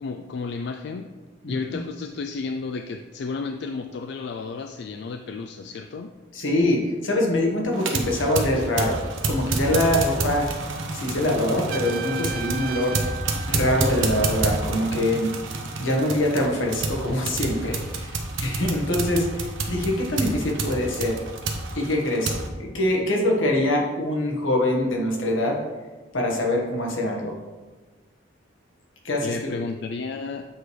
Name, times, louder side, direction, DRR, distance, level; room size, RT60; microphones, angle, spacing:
voice 1, 0.0-1.1 1.5-6.1 29.2-30.5, left 4 dB, 60° left, 6 dB, 0.3 m, -32 dB
voice 2, 1.4-1.8 6.3-9.0 9.3-10.5 10.9-13.1 13.5-15.3 15.8-21.2 21.7-25.6 26.1-27.3 29.0-29.5, left 1 dB, 80° left, 0 dB, 1.4 m, -24 dB
sound 1, 7.7-22.5, right 3 dB, 80° right, 0.8 m, -29 dB
Trumpet, 11.7-14.5, right 6 dB, 45° right, 0.4 m, -36 dB
8.0 x 3.3 x 4.7 m, 1.3 s
head